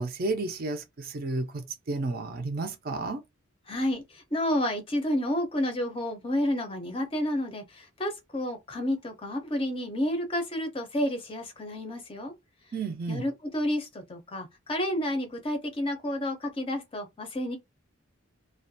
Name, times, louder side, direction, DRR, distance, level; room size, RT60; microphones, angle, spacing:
voice 1, 0.0-3.2 12.7-13.2, right 3 dB, 45° right, 0.4 m, -32 dB
voice 2, 3.7-12.3 13.1-17.6, left 1 dB, 25° left, 0.5 m, -30 dB
2.3 x 2.1 x 2.6 m
head